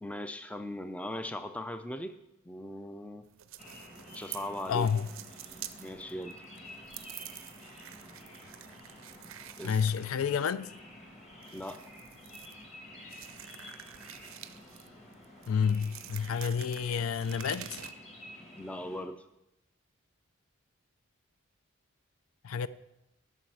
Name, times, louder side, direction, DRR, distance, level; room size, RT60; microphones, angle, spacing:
voice 1, 0.0-2.1 2.5-3.3 4.1-4.9 5.8-6.4 9.6-9.8 11.5-11.8 18.6-19.2, left 1 dB, 5° left, 0.3 m, -39 dB
sound 1, 3.2-17.9, right 12 dB, 75° right, 0.5 m, -48 dB
sound 2, 3.6-19.0, left 1 dB, 30° left, 1.7 m, -51 dB
voice 2, 4.7-5.1 9.6-10.7 15.5-17.8 22.4-22.7, left 6 dB, 80° left, 0.4 m, -29 dB
12.5 x 5.9 x 4.8 m
head